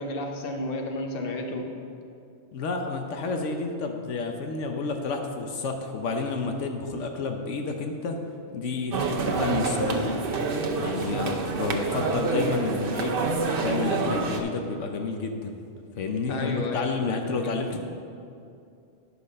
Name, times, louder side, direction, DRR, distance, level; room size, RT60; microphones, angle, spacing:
voice 1, 0.0-1.7 16.3-17.1 17.4-17.6, left 1 dB, 55° left, 3 dB, 1.1 m, -32 dB
voice 2, 2.5-8.2 8.5-10.1 10.8-13.2 13.6-15.6 16.0-17.8, left 4 dB, 85° left, 4 dB, 1.1 m, -30 dB
sound 1, 8.9-14.4, right 3 dB, 55° right, 0.9 m, -27 dB
9.6 x 4.8 x 6.5 m, 2.6 s
omnidirectional pair, 1.2 m